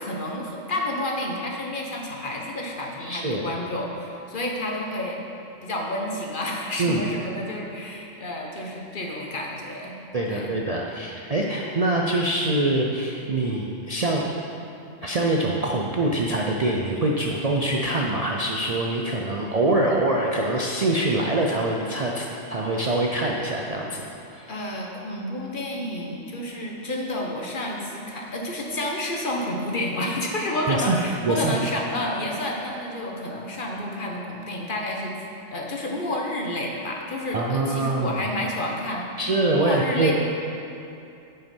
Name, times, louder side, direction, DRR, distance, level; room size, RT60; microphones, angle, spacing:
voice 1, 0.0-5.2 5.6-10.0 10.3-10.6 24.5-35.1 35.5-39.1 39.6-40.1, left 1 dB, 45° left, -1 dB, 1.1 m, -30 dB
voice 2, 3.0-3.5 6.8-7.0 10.1-14.2 15.0-24.0 24.3-24.6 30.7-31.0 31.2-31.6 37.3-38.1 39.2-40.1, right 2 dB, 45° right, -2 dB, 0.5 m, -24 dB
9.6 x 5.7 x 5.3 m, 2.7 s
omnidirectional pair, 1.3 m